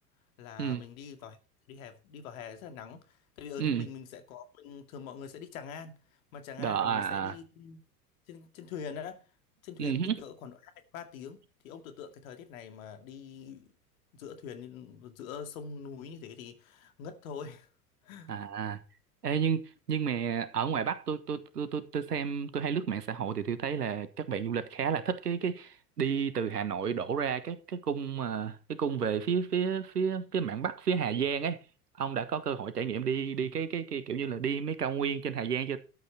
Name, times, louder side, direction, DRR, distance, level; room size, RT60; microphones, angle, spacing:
voice 1, 0.4-1.4 1.7-6.0 6.3-7.8 8.3-9.2 9.6-13.7 14.1-17.7 18.0-18.3, left 7 dB, 60° left, 2.4 m, -44 dB
voice 2, 6.6-7.4 9.8-10.2 18.3-18.8 19.2-31.6 32.0-35.8, right 7 dB, 80° right, 1.5 m, -31 dB
12.5 x 8.5 x 4.4 m
figure-of-eight pair, 80°, 47 cm